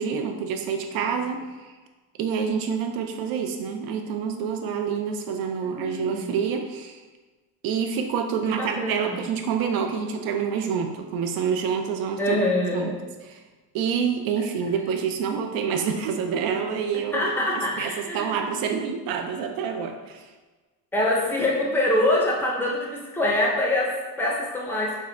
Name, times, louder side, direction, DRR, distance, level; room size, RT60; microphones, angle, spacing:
voice 1, 0.0-1.7 2.2-7.0 7.6-12.4 12.7-13.0 13.3-13.4 13.7-20.3, right 6 dB, 65° right, 5 dB, 0.5 m, -27 dB
voice 2, 5.7-6.3 8.5-9.2 12.2-13.0 17.1-18.4 20.9-25.0, left 1 dB, 5° left, -3 dB, 0.5 m, -25 dB
3.6 x 2.1 x 3.7 m, 1.3 s
cardioid pair, 145°, 38 cm